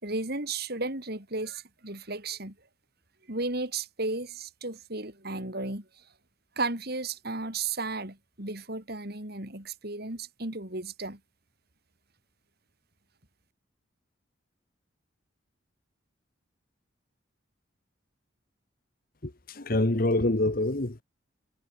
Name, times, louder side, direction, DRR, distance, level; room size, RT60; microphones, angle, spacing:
voice 1, 0.0-2.5 3.3-5.8 6.6-11.2, right 3 dB, 50° right, 4.5 m, -34 dB
voice 2, 19.7-21.0, left 2 dB, 45° left, 1.3 m, -25 dB
head